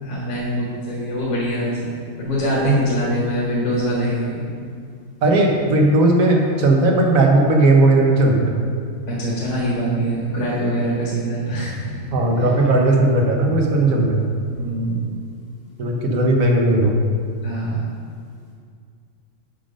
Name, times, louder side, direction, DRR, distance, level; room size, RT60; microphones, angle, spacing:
voice 1, 0.0-1.9 2.2-4.5 9.1-12.5 14.5-15.1 17.4-17.8, equal, 65° left, -6 dB, 1.7 m, -24 dB
voice 2, 5.2-8.6 12.1-14.3 15.8-17.0, right 2 dB, 80° right, 0 dB, 1.5 m, -16 dB
7.3 x 5.2 x 5.4 m, 2.1 s
omnidirectional pair, 1.4 m